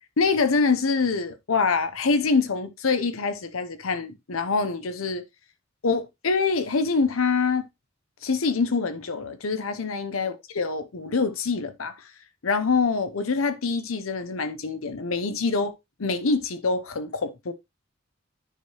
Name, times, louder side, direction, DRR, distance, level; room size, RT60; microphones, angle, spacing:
voice 1, 0.2-5.2 5.8-7.7 8.2-11.9 12.4-17.5, left 4 dB, 85° left, 0.8 m, -25 dB
10.0 x 4.7 x 3.0 m
head